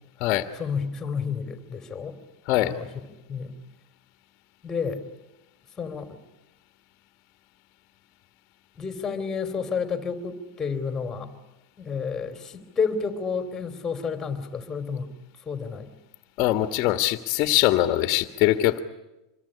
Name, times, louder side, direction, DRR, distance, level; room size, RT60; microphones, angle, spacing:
voice 1, 0.6-2.2 2.6-3.6 4.6-5.0 5.8-6.2 8.8-11.3 11.8-15.1 15.5-15.9, left 5 dB, 15° left, 8 dB, 2.9 m, -30 dB
voice 2, 2.5-2.8 16.4-18.8, left 15 dB, 40° left, 8 dB, 1.6 m, -22 dB
26.5 x 22.5 x 9.8 m, 0.98 s
supercardioid pair, 145°, 2 cm